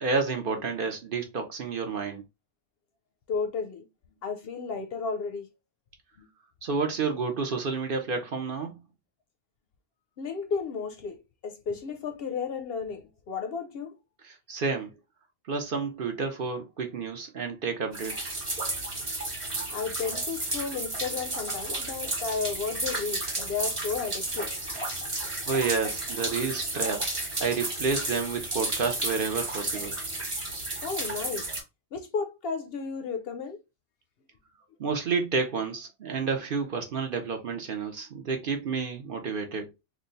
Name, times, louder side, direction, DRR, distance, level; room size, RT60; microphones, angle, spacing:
voice 1, 0.0-2.2 6.6-8.8 14.2-14.9 15.5-18.4 25.5-29.9 34.8-39.7, right 4 dB, 55° right, 0.8 m, -30 dB
voice 2, 3.3-3.8 4.2-5.5 6.2-6.3 10.2-13.9 19.7-24.5 30.8-31.5 31.9-33.6, left 5 dB, 65° left, 0.7 m, -33 dB
sound 1, 17.9-31.6, right 2 dB, 30° right, 1.0 m, -32 dB
3.0 x 2.2 x 3.8 m
omnidirectional pair, 1.2 m